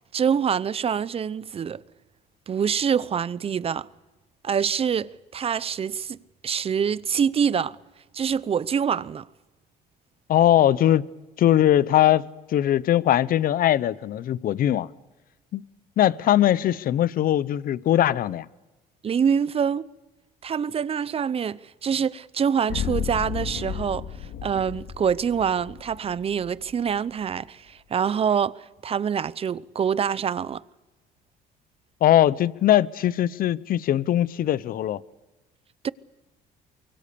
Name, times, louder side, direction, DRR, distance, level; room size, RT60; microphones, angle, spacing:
voice 1, 0.1-1.8 2.5-3.9 4.4-6.2 6.4-7.8 8.1-9.3 19.0-19.9 20.4-24.0 24.4-30.6 35.8-35.9, right 7 dB, 35° right, 0.7 m, -25 dB
voice 2, 10.3-11.1 11.4-14.9 15.5-15.6 16.0-18.5 32.0-35.0, left 12 dB, 60° left, 0.8 m, -21 dB
sound 1, 22.7-26.7, left 8 dB, 75° left, 2.3 m, -33 dB
25.0 x 23.5 x 6.9 m
cardioid pair, 110°, 17 cm